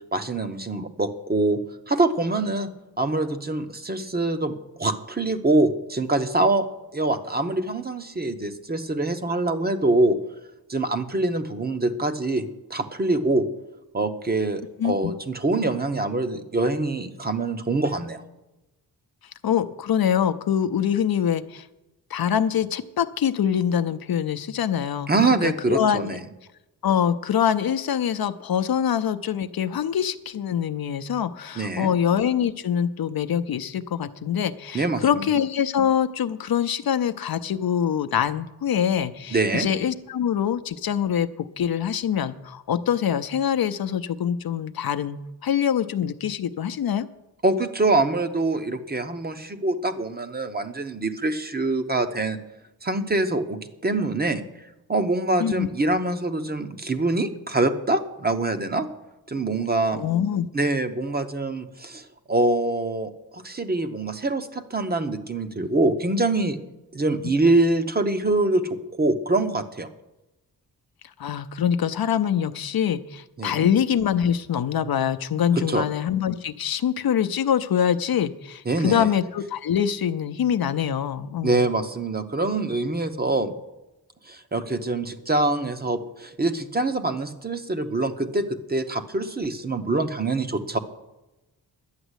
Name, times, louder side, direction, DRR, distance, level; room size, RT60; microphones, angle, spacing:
voice 1, 0.1-1.6 1.9-2.7 3.0-6.7 6.9-10.2 10.7-13.5 13.9-18.2 25.1-26.2 31.6-31.9 34.7-35.2 39.3-39.7 47.4-52.4 52.8-54.4 54.9-58.9 59.3-60.1 60.5-66.6 66.9-69.9 73.4-73.7 75.5-75.9 78.7-79.1 81.4-83.5 84.3-90.8, right 2 dB, 25° right, 8 dB, 0.8 m, -24 dB
voice 2, 14.8-15.1 19.4-21.7 22.1-25.1 25.4-26.2 26.8-47.1 55.4-55.7 59.9-60.5 71.2-81.6, left 8 dB, 65° left, 11 dB, 0.6 m, -24 dB
11.5 x 9.0 x 8.1 m, 0.98 s
wide cardioid pair, 180°, 40 cm